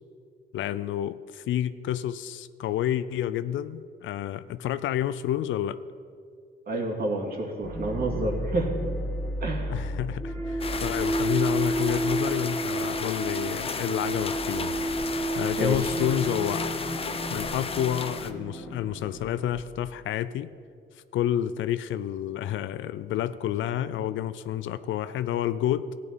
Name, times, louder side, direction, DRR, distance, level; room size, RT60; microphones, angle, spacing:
voice 1, 0.5-5.8 9.7-14.8 15.3-16.6 17.3-20.5 21.1-25.9, left 11 dB, 75° left, 14 dB, 0.5 m, -29 dB
voice 2, 6.7-8.9 9.4-9.8 15.6-15.9, right 2 dB, 50° right, -1 dB, 2.3 m, -29 dB
sound 1, 7.6-19.4, right 1 dB, 5° left, 1.6 m, -31 dB
sound 2, 10.6-18.3, left 5 dB, 30° left, 0.6 m, -34 dB
15.0 x 9.1 x 4.1 m, 2.2 s
cardioid pair, 90°, 20 cm